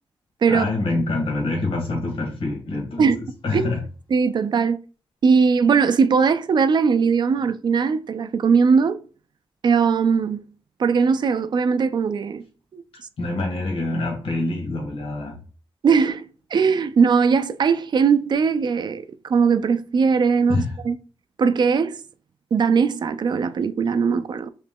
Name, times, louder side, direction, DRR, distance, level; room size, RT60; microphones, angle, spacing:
voice 1, 0.5-3.8 12.9-15.4 20.5-20.8, left 2 dB, 75° left, 1.3 m, -26 dB
voice 2, 4.1-4.8 5.2-9.0 9.6-10.4 10.8-12.4 12.7-12.8 15.8-16.2 16.5-21.0 21.4-22.0 22.5-24.5, right 5 dB, 50° right, 0.3 m, -19 dB
3.1 x 2.9 x 3.6 m
wide cardioid pair, 100°, 9 cm